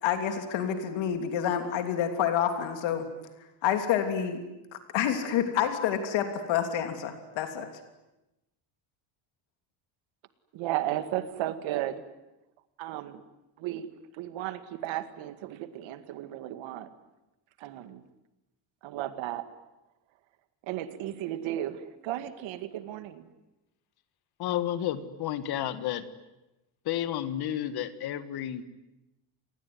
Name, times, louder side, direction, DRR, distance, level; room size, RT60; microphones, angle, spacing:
voice 1, 0.0-3.1 3.6-4.4 4.9-7.7, left 9 dB, 70° left, 7 dB, 3.1 m, -28 dB
voice 2, 10.5-12.0 12.8-13.2 13.6-16.9 17.6-18.0 18.8-19.5 20.6-23.3, right 13 dB, 75° right, 11 dB, 2.1 m, -34 dB
voice 3, 24.4-26.1 26.9-28.7, left 11 dB, 50° left, 13 dB, 1.7 m, -31 dB
28.5 x 20.0 x 9.6 m, 0.97 s
cardioid pair, 175°, 47 cm